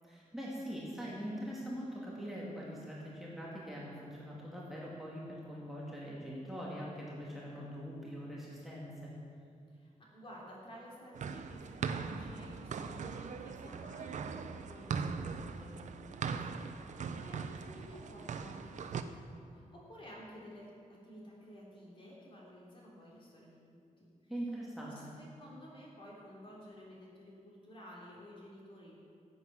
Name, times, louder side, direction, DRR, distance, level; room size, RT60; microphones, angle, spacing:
voice 1, 0.1-9.1 24.3-25.1, equal, ahead, -6 dB, 2.1 m, -42 dB
voice 2, 9.7-24.3 24.9-28.9, equal, 40° left, -4 dB, 3.2 m, -53 dB
sound 1, 11.1-19.0, right 5 dB, 65° right, 0.6 m, -40 dB
15.0 x 8.0 x 6.0 m, 2.4 s
wide cardioid pair, 160°, 13 cm